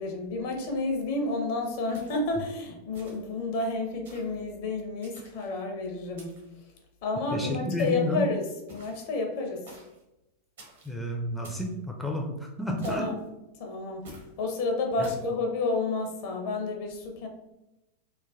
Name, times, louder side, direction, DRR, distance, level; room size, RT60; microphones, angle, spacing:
voice 1, 0.0-6.4 7.0-8.4 8.7-9.7 12.8-13.2 13.6-17.3, left 3 dB, 50° left, 2 dB, 0.6 m, -30 dB
sound 1, 1.9-2.4 2.9-3.4 4.0-4.4 5.0-5.6 6.2-6.6 7.8-8.1 8.7-9.1 9.7-10.0 10.6-10.9 11.4-11.7 12.8-13.3 14.0-14.3 15.0-15.3, right 1 dB, 60° right, 0.7 m, -50 dB
voice 2, 7.3-8.3 10.8-13.1 15.0-15.1, equal, ahead, 0 dB, 0.4 m, -31 dB
3.1 x 2.2 x 2.4 m, 0.93 s
figure-of-eight pair, 90°, 0 cm